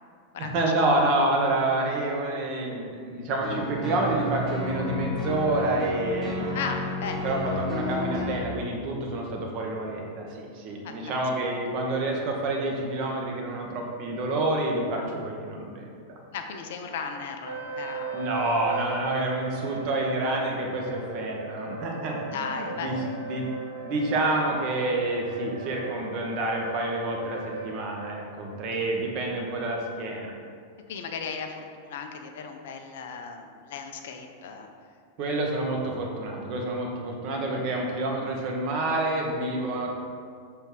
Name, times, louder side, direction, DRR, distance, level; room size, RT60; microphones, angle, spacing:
voice 1, 0.4-6.6 7.2-15.9 18.1-22.9 23.2-23.4 23.8-30.3 35.2-39.9, right 2 dB, 40° right, 0 dB, 1.1 m, -28 dB
sound 1, 3.4-8.4, left 1 dB, 10° left, 1.2 m, -31 dB
voice 2, 6.5-7.3 10.8-11.2 16.3-18.2 22.3-23.0 28.8-28.9 30.9-34.7, left 5 dB, 55° left, 5 dB, 0.5 m, -36 dB
sound 2, 17.4-28.2, right 3 dB, 75° right, 0.7 m, -38 dB
6.5 x 3.4 x 4.7 m, 2.2 s
figure-of-eight pair, 90°, 0 cm